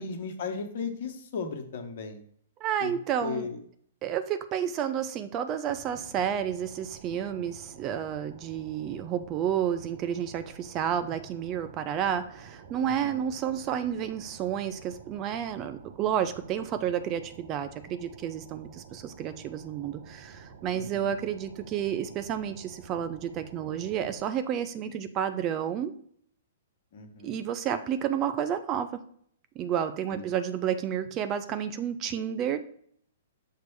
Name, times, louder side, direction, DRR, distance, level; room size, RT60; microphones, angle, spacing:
voice 1, 0.0-2.2 2.8-2.9 3.2-3.6 12.8-13.2 20.7-21.2 26.9-27.4 30.1-30.3, left 5 dB, 50° left, 5 dB, 1.1 m, -36 dB
voice 2, 2.6-3.5 4.0-25.9 27.2-28.9 29.6-32.6, right 9 dB, 30° right, 10 dB, 0.5 m, -31 dB
sound 1, 5.7-24.2, right 5 dB, 50° right, 0.9 m, -50 dB
6.7 x 3.2 x 4.6 m, 0.62 s
figure-of-eight pair, 110°, 0 cm